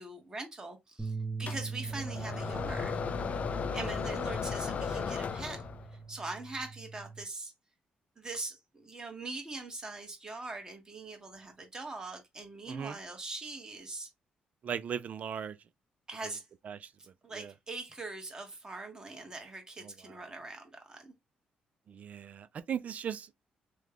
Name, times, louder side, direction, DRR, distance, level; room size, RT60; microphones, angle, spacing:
voice 1, 0.0-3.0 3.7-5.6 5.9-7.5 8.2-14.1 16.1-16.4 17.0-21.1, right 3 dB, 25° right, 1.3 m, -42 dB
sound 1, 1.0-7.2, right 4 dB, 5° right, 0.9 m, -42 dB
sound 2, 1.5-5.9, left 6 dB, 50° left, 0.4 m, -35 dB
voice 2, 14.6-15.5 16.7-16.9 17.3-17.5 21.9-23.3, right 8 dB, 55° right, 0.4 m, -37 dB
3.1 x 2.3 x 3.6 m
cardioid pair, 85°, 3 cm